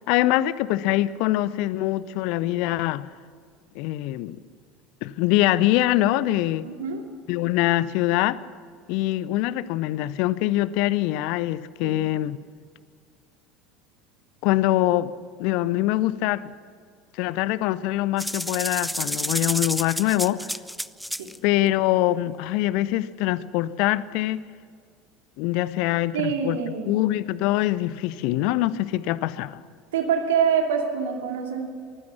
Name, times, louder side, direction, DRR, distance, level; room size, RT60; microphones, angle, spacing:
voice 1, 0.1-3.1 3.7-4.4 5.0-6.7 7.3-8.4 8.9-12.4 14.4-15.1 15.4-16.5 17.2-20.5 21.4-24.4 25.4-26.6 26.9-29.6, left 15 dB, 55° left, 18 dB, 0.6 m, -24 dB
voice 2, 6.6-7.0 11.8-12.0 21.2-21.3 26.1-27.0 29.9-31.7, right 7 dB, 65° right, 4 dB, 2.4 m, -25 dB
sound 1, 18.2-21.4, equal, ahead, 0.5 m, -29 dB
23.5 x 15.5 x 7.2 m, 2.1 s
figure-of-eight pair, 70°, 0 cm